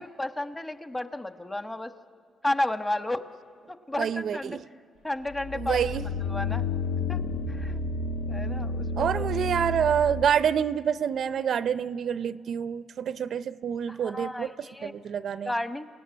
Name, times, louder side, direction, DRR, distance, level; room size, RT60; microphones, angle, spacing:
voice 1, 0.0-1.9 2.4-3.2 3.7-4.6 5.0-5.9 6.2-6.7 7.1-7.2 7.5-7.8 8.3-9.2 13.9-14.9 15.4-15.8, left 1 dB, 15° left, 8 dB, 1.3 m, -32 dB
voice 2, 4.0-4.6 5.5-6.0 9.0-15.5, right 8 dB, 60° right, 15 dB, 0.6 m, -27 dB
sound 1, 5.3-10.4, left 3 dB, 85° left, 1.3 m, -31 dB
28.0 x 17.5 x 9.7 m, 2.2 s
cardioid pair, 90°, 0 cm